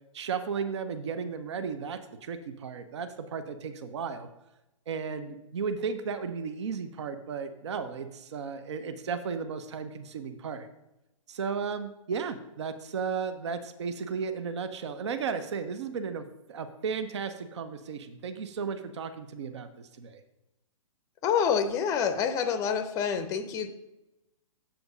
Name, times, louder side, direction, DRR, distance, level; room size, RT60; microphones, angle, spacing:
voice 1, 0.1-4.3 4.9-10.7 11.3-20.2, right 6 dB, 55° right, 10 dB, 0.8 m, -34 dB
voice 2, 21.2-23.7, left 7 dB, 20° left, 10 dB, 0.6 m, -27 dB
7.8 x 7.2 x 5.0 m, 0.92 s
figure-of-eight pair, 120°, 17 cm